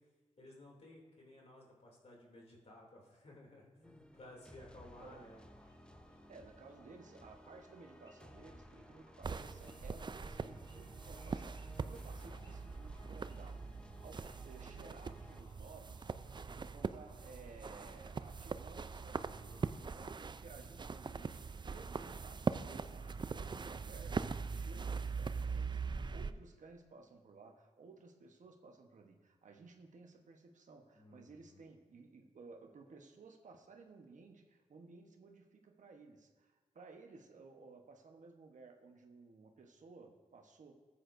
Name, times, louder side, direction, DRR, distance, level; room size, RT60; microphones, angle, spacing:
voice 1, 0.4-5.4 30.9-31.6, left 1 dB, 50° left, -1 dB, 2.8 m, -57 dB
sound 1, 3.8-15.4, equal, 5° left, 0.7 m, -58 dB
sound 2, 4.9-20.0, left 1 dB, 25° left, 3.3 m, -65 dB
voice 2, 6.3-40.8, right 4 dB, 70° right, 3 dB, 1.1 m, -57 dB
sound 3, 9.2-26.3, right 5 dB, 35° right, 0.4 m, -42 dB
14.0 x 8.6 x 2.6 m, 1.3 s
cardioid pair, 50°, 13 cm